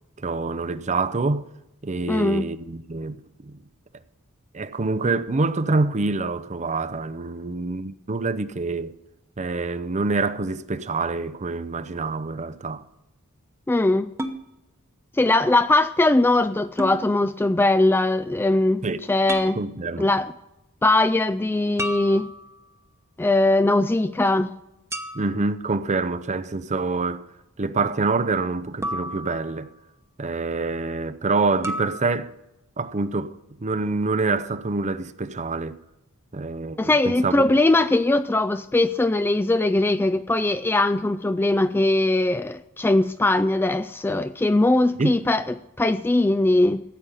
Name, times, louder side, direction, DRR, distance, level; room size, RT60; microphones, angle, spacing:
voice 1, 0.2-1.5 1.8-3.6 4.5-8.9 9.4-12.8 18.8-19.0 19.6-20.1 25.1-27.3 27.6-29.7 30.2-32.3 32.8-33.3 33.6-35.8 36.3-37.5 45.0-45.2, right 3 dB, 35° right, 0.6 m, -26 dB
voice 2, 2.1-2.5 13.7-14.1 15.2-19.6 20.0-20.3 20.8-22.3 23.2-24.5 36.8-46.8, left 2 dB, 10° left, 0.3 m, -20 dB
sound 1, 14.2-14.4 16.8-17.0 19.3-19.6 21.8-22.7 24.9-25.5 28.8-29.7 31.6-32.0, equal, 15° right, 1.0 m, -32 dB
14.5 x 8.3 x 5.5 m
head